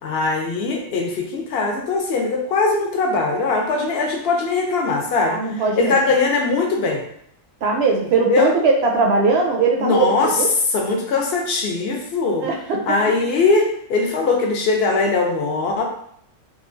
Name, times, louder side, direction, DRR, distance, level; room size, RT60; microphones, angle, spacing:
voice 1, 0.0-5.4 5.8-7.0 8.2-8.5 9.8-10.3 10.7-12.5 12.9-15.8, left 3 dB, 60° left, 1 dB, 0.7 m, -20 dB
voice 2, 5.2-6.0 7.6-10.5 12.4-13.0, right 4 dB, 65° right, 1 dB, 0.7 m, -20 dB
2.9 x 2.2 x 2.5 m, 0.69 s
omnidirectional pair, 1.3 m